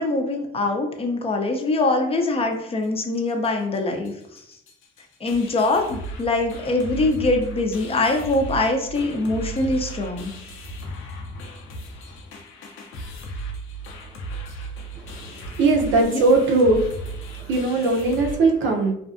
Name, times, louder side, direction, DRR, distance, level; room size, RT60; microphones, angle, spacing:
voice 1, 0.0-4.1 5.2-10.3 16.0-16.2, left 2 dB, 30° left, 3 dB, 0.5 m, -23 dB
sound 1, 2.8-2.9 3.1-3.5 3.7-3.8 4.0-18.4, right 2 dB, 90° left, 0.6 m, -36 dB
voice 2, 15.0-16.9 17.5-18.9, right 3 dB, 75° right, 2 dB, 0.6 m, -20 dB
2.5 x 2.3 x 2.4 m, 0.76 s
cardioid pair, 90°, 20 cm